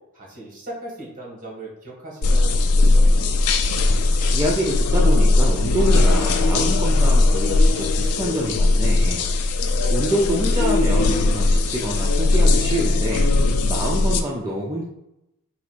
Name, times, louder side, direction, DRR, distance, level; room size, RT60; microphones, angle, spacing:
voice 1, 0.1-3.1, right 2 dB, 35° right, -3 dB, 1.5 m, -38 dB
sound 1, 2.2-14.2, left 2 dB, 80° left, 0.4 m, -18 dB
voice 2, 4.3-9.3 9.9-13.3 13.7-14.8, equal, 15° right, -4 dB, 0.4 m, -26 dB
4.0 x 2.4 x 4.4 m, 0.87 s
head